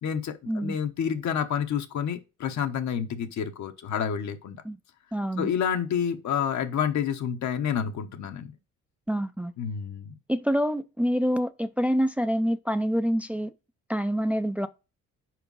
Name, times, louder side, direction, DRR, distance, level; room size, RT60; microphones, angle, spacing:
voice 1, 0.0-4.6 5.4-8.5 9.6-10.2, left 8 dB, 70° left, 1.2 m, -29 dB
voice 2, 5.1-5.5 9.1-9.5 10.3-13.5 13.9-14.7, equal, 5° right, 0.5 m, -26 dB
5.1 x 4.6 x 5.5 m
cardioid pair, 90°, 30 cm